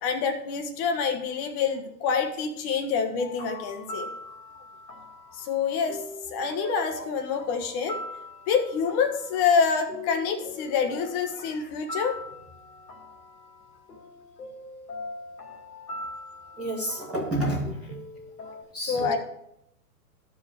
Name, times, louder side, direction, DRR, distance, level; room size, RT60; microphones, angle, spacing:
voice 1, 0.0-4.3 5.3-6.0 6.3-8.0 8.5-12.1 18.9-19.2, left 6 dB, 30° left, 6 dB, 1.2 m, -27 dB
sound 1, 3.2-18.6, left 1 dB, 80° left, 2.5 m, -42 dB
voice 2, 16.6-18.0 18.7-19.2, right 1 dB, ahead, -9 dB, 0.3 m, -30 dB
13.5 x 4.8 x 4.8 m, 0.79 s
hypercardioid pair, 130°, 46 cm